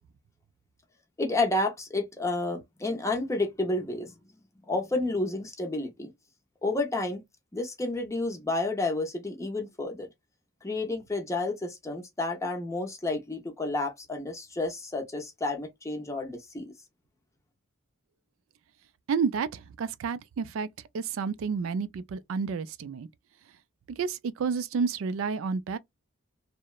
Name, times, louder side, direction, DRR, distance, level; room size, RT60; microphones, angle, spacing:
voice 1, 1.2-4.1 4.7-6.1 6.6-7.2 7.5-10.1 10.6-16.7, left 2 dB, 15° left, 0.5 m, -30 dB
voice 2, 19.1-20.7 20.9-23.1 23.9-25.8, right 5 dB, 70° right, 0.3 m, -30 dB
2.9 x 2.0 x 2.2 m
head